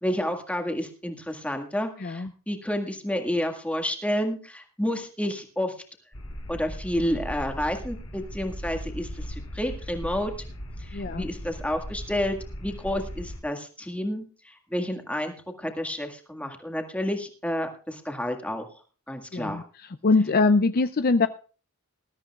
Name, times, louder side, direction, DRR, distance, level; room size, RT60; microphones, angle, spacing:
voice 1, 0.0-5.7 6.5-10.3 10.8-18.7 19.1-19.7, left 1 dB, 5° left, 4 dB, 1.9 m, -30 dB
sound 1, 6.1-13.4, equal, 65° left, 3.2 m, -38 dB
voice 2, 10.9-11.3 19.3-19.6 20.0-21.3, left 3 dB, 45° left, 11 dB, 0.5 m, -22 dB
20.0 x 13.0 x 2.4 m, 0.38 s
head